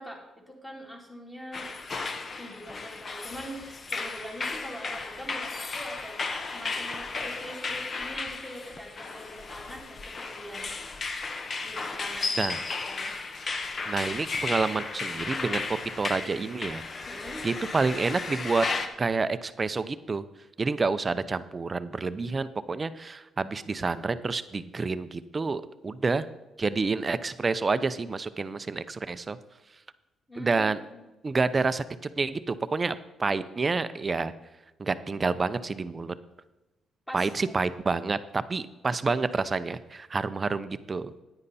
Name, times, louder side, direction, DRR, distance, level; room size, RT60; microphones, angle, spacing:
voice 1, 0.0-1.7 2.4-3.6 3.9-6.2 6.4-10.7 11.6-13.2 17.1-17.4 30.3-31.1 37.1-37.6, equal, 10° left, -1 dB, 3.1 m, -43 dB
sound 1, 1.5-18.9, left 4 dB, 40° left, 1.0 m, -34 dB
voice 2, 13.9-16.8 17.4-18.6 19.0-20.2 20.6-26.3 26.6-29.4 30.4-30.8 31.2-32.9 33.2-34.3 34.8-36.1 37.1-41.1, right 4 dB, 30° right, 14 dB, 0.6 m, -28 dB
9.9 x 9.7 x 4.2 m, 1.0 s
cardioid pair, 90°, 0 cm